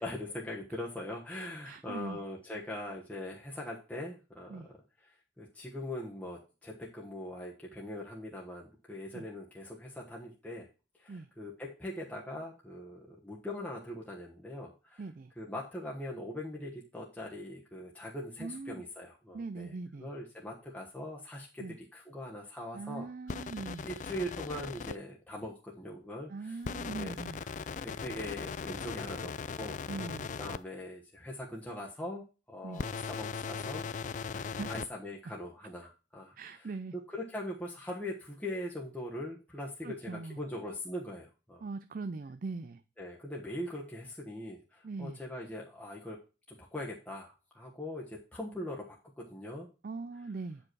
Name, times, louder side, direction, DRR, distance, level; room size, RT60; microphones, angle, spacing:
voice 1, 0.0-4.7 5.0-5.1 5.4-10.7 11.0-15.0 15.4-19.7 20.0-21.6 21.9-23.4 23.8-27.4 27.8-33.8 34.7-36.7 37.1-41.7 43.0-46.2 46.5-49.7, left 1 dB, 10° left, 1.2 m, -41 dB
voice 2, 1.3-2.2 4.5-4.7 9.1-9.2 11.1-11.3 15.0-15.3 18.4-18.8 19.3-20.1 21.6-21.8 22.7-23.9 26.3-27.4 29.9-30.3 32.6-32.8 34.3-34.8 36.4-37.0 39.8-40.4 41.6-42.8 44.8-45.2 49.8-50.6, right 3 dB, 50° right, 0.4 m, -41 dB
sound 1, 23.3-25.0 26.6-30.6 32.7-34.9, left 6 dB, 40° left, 0.3 m, -39 dB
8.5 x 5.1 x 4.6 m
head